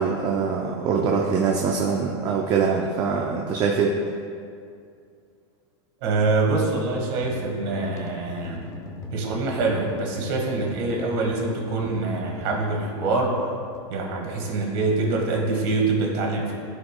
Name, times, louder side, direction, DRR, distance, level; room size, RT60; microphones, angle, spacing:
voice 1, 0.0-4.0, right 5 dB, 25° right, 0 dB, 0.5 m, -23 dB
voice 2, 6.0-8.7 9.1-13.5 13.9-16.5, right 3 dB, 55° right, 0 dB, 1.7 m, -25 dB
sound 1, 6.9-13.8, left 3 dB, 20° left, 0.6 m, -38 dB
14.0 x 4.9 x 2.2 m, 2.3 s
supercardioid pair, 145°, 15 cm